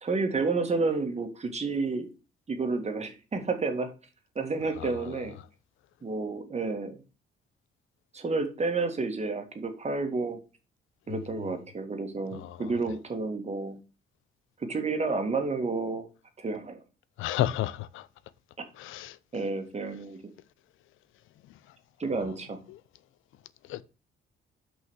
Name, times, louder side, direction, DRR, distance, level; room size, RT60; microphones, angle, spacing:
voice 1, 0.0-2.1 2.5-3.9 4.4-5.3 6.0-7.0 8.1-10.4 11.1-13.8 14.6-16.1 16.4-16.8 19.3-20.2 22.0-22.6, right 3 dB, 35° right, 2.0 m, -30 dB
voice 2, 4.8-5.2 11.1-11.2 12.4-12.6 17.2-18.1 18.8-19.2 23.7-23.8, left 13 dB, 85° left, 0.6 m, -32 dB
6.1 x 5.5 x 6.3 m
cardioid pair, 90°, 20 cm